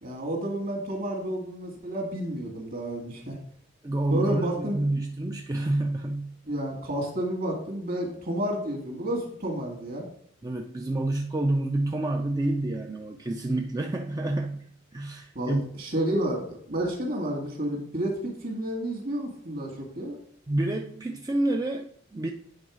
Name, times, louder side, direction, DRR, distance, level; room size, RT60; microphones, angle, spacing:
voice 1, 0.0-3.4 4.1-4.8 6.5-10.1 15.4-20.2, right 1 dB, 50° right, 0 dB, 2.0 m, -30 dB
voice 2, 3.8-6.3 10.4-14.6 14.9-15.6 20.5-22.3, right 2 dB, 20° right, 2 dB, 0.4 m, -28 dB
8.8 x 3.8 x 4.9 m, 0.62 s
head